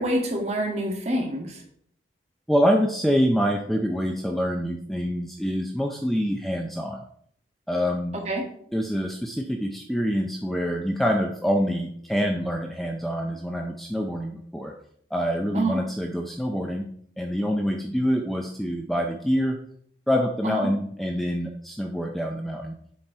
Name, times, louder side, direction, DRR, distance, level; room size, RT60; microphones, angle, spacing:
voice 1, 0.0-1.6 8.3-8.5 15.5-15.8 20.4-20.7, right 1 dB, 35° right, 0 dB, 1.6 m, -26 dB
voice 2, 2.5-7.0 7.7-8.2 8.7-14.7 15.1-16.9 17.2-19.6 20.1-22.7, equal, ahead, 1 dB, 0.5 m, -26 dB
7.4 x 4.2 x 4.4 m, 0.64 s
head